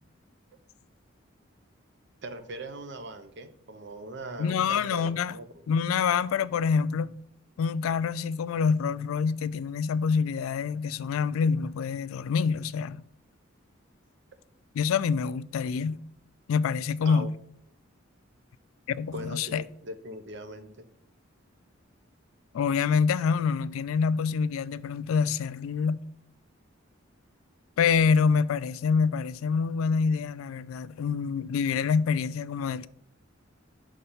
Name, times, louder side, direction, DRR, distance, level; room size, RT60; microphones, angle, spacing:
voice 1, 2.2-5.5 17.1-17.3 19.1-20.7, right 1 dB, 55° right, 0.6 m, -40 dB
voice 2, 4.4-5.4 5.7-7.1 7.6-13.0 14.7-16.0 16.5-17.3 18.9-19.6 22.5-26.0 27.8-32.9, left 6 dB, 90° left, 0.3 m, -26 dB
5.5 x 3.3 x 5.5 m
head